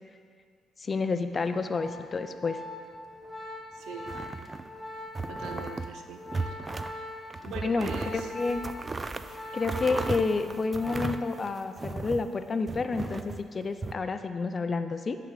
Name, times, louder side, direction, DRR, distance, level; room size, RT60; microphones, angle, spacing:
voice 1, 0.8-2.6 7.4-8.6 9.5-15.2, left 4 dB, 35° left, 9 dB, 0.4 m, -30 dB
Organ, 1.4-11.4 11.7-12.0, left 1 dB, 5° left, 1.0 m, -42 dB
voice 2, 3.7-4.1 5.3-6.6 7.4-8.3, right 6 dB, 85° right, 5 dB, 0.6 m, -42 dB
sound 1, 4.0-4.7 5.1-5.9 6.3-7.0 7.3-12.3 12.7-13.9, right 3 dB, 30° right, 0.3 m, -36 dB
10.0 x 3.9 x 4.8 m, 2.1 s
cardioid pair, 90°, 0 cm